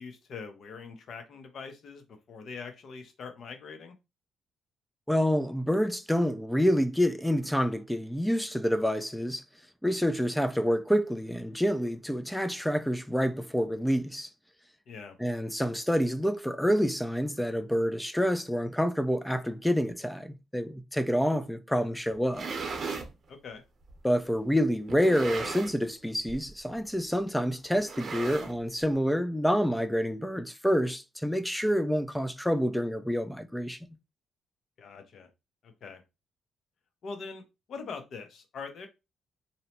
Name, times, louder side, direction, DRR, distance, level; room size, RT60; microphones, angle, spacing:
voice 1, 0.0-3.9 14.9-15.2 23.3-23.6 34.8-35.3 35.6-36.0 37.0-37.4 37.7-38.9, left 5 dB, 60° left, 0.7 m, -42 dB
voice 2, 5.1-9.4 9.8-14.3 15.2-22.5 24.0-33.8, equal, 5° left, 0.3 m, -27 dB
sound 1, 22.1-23.1 23.9-24.0 24.9-25.9 26.2-26.5 26.8-26.9 27.7-28.8, right 4 dB, 50° right, 0.8 m, -37 dB
2.7 x 2.1 x 2.9 m
cardioid pair, 90°, 0 cm